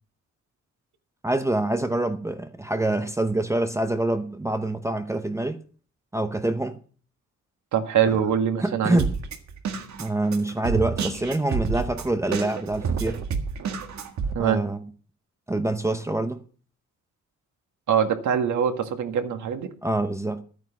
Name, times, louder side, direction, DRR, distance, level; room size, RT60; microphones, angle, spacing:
voice 1, 1.2-5.6 6.1-6.8 8.6-9.1 10.0-13.2 14.4-14.8 15.5-16.4 19.8-20.4, right 2 dB, 10° right, 0.7 m, -26 dB
voice 2, 7.7-9.0 14.3-14.6 17.9-19.7, right 8 dB, 85° right, 1.9 m, -23 dB
Drum kit, 9.0-14.3, right 5 dB, 70° right, 1.8 m, -29 dB
13.0 x 9.3 x 5.9 m
wide cardioid pair, 170°, 29 cm